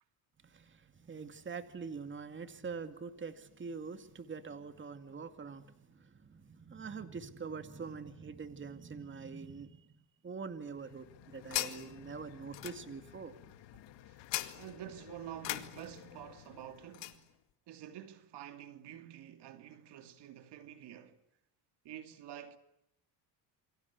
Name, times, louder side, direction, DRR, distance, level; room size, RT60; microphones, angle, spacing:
voice 1, 0.4-13.4, right 5 dB, 25° right, 2.3 m, -45 dB
sound 1, 10.6-17.2, left 16 dB, 75° left, 2.3 m, -43 dB
voice 2, 14.5-17.3 17.7-21.2 21.8-22.6, right 11 dB, 65° right, 2.6 m, -48 dB
28.5 x 24.5 x 8.3 m
cardioid pair, 110°, 44 cm